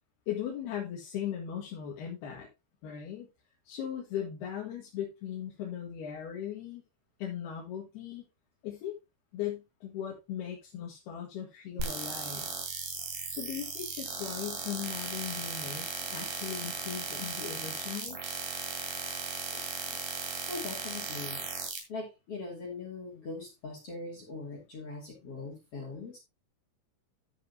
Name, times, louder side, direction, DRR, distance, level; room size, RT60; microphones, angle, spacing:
voice 1, 0.3-2.5 2.8-3.3 3.7-6.8 7.2-8.2 8.6-8.9 9.3-12.5 13.3-18.4, left 9 dB, 65° left, 3.6 m, -38 dB
sound 1, 11.8-21.8, right 5 dB, 60° right, 4.0 m, -37 dB
voice 2, 19.5-21.4 21.9-26.2, left 3 dB, 35° left, 3.1 m, -42 dB
13.5 x 6.5 x 2.9 m
omnidirectional pair, 5.3 m